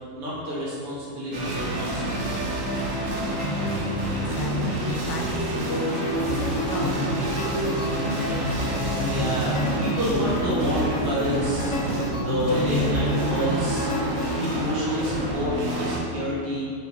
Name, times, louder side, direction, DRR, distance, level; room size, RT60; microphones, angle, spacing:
voice 1, 0.1-2.3 9.0-11.8 12.1-13.9 14.3-16.7, equal, 80° right, -7 dB, 3.2 m, -29 dB
sound 1, 1.3-16.0, right 1 dB, 40° right, 1.5 m, -27 dB
voice 2, 3.3-8.4, left 2 dB, 65° left, 1 dB, 1.5 m, -36 dB
sound 2, 5.8-14.4, left 1 dB, 90° left, 0.6 m, -31 dB
9.7 x 6.5 x 4.0 m, 2.3 s
omnidirectional pair, 2.4 m